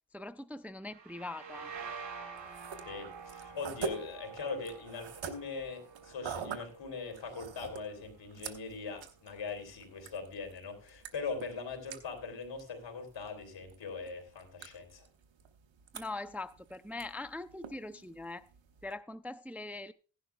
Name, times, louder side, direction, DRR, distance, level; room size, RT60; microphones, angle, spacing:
voice 1, 0.1-1.7 15.9-18.5 18.8-19.9, left 2 dB, 5° right, 0.4 m, -42 dB
sound 1, 0.8-8.4, right 5 dB, 70° right, 3.6 m, -48 dB
sound 2, 2.4-18.9, right 6 dB, 85° right, 1.2 m, -47 dB
voice 2, 2.9-15.1, left 4 dB, 75° left, 3.3 m, -41 dB
16.0 x 11.0 x 2.3 m
cardioid pair, 60°, 44 cm